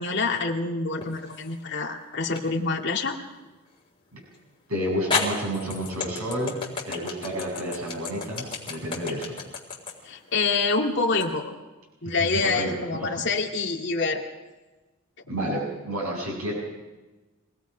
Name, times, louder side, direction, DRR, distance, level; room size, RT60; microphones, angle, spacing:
voice 1, 0.0-3.2 10.0-11.5 12.0-14.2, left 4 dB, 50° left, 0 dB, 2.3 m, -26 dB
sound 1, 1.0-1.6 2.4-2.5 4.3-4.4 5.1-11.3, left 4 dB, 20° left, 3.9 m, -32 dB
voice 2, 4.7-9.4 12.0-13.2 15.3-16.5, equal, 80° right, -3 dB, 7.9 m, -30 dB
26.5 x 19.0 x 5.2 m, 1.2 s
head